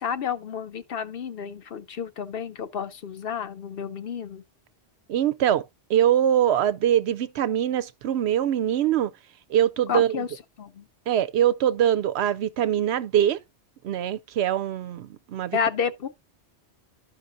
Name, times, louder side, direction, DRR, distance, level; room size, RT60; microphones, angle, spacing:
voice 1, 0.0-4.4 9.9-10.3 10.6-10.9 15.5-16.1, left 7 dB, 60° left, 0.9 m, -30 dB
voice 2, 5.1-5.6 5.9-9.1 9.5-10.2 11.1-13.4 13.8-15.6, right 10 dB, 75° right, 0.8 m, -23 dB
12.0 x 5.4 x 2.6 m
omnidirectional pair, 1.1 m